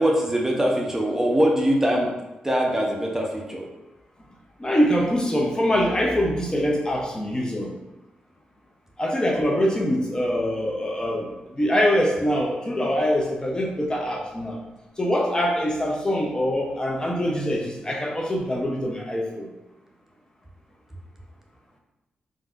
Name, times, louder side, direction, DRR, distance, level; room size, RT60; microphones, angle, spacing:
voice 1, 0.0-2.1 2.4-3.7, equal, 15° right, -1 dB, 0.6 m, -22 dB
voice 2, 4.6-7.7 9.0-14.6 15.0-19.5, equal, 25° left, -1 dB, 0.6 m, -24 dB
3.4 x 2.6 x 2.4 m, 1.0 s
cardioid pair, 60°, 3 cm